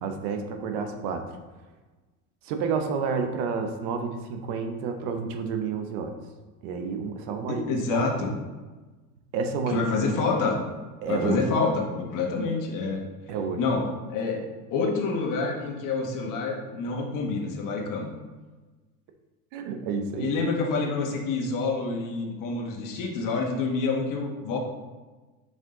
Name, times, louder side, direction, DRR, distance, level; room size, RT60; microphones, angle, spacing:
voice 1, 0.0-1.2 2.4-6.1 6.6-8.1 9.3-9.9 11.0-11.4 13.3-13.6 19.5-20.3, right 5 dB, 60° right, 5 dB, 1.0 m, -30 dB
voice 2, 7.5-8.3 9.7-10.6 11.0-13.0 13.6-14.4 14.7-18.1 20.2-24.6, left 4 dB, 45° left, 1 dB, 1.5 m, -27 dB
6.0 x 5.2 x 3.8 m, 1.2 s
supercardioid pair, 125°, 45 cm